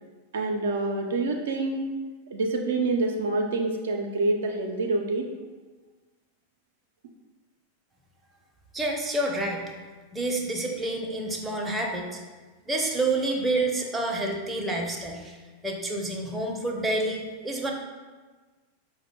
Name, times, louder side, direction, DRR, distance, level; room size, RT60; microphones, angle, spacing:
voice 1, 0.3-1.8 2.3-5.3, right 2 dB, 60° right, 2 dB, 0.4 m, -26 dB
voice 2, 8.7-9.6 10.1-12.2 12.7-15.4 15.6-17.7, right 2 dB, 10° right, 0 dB, 0.5 m, -28 dB
4.9 x 2.1 x 3.5 m, 1.3 s
figure-of-eight pair, 90°, 0 cm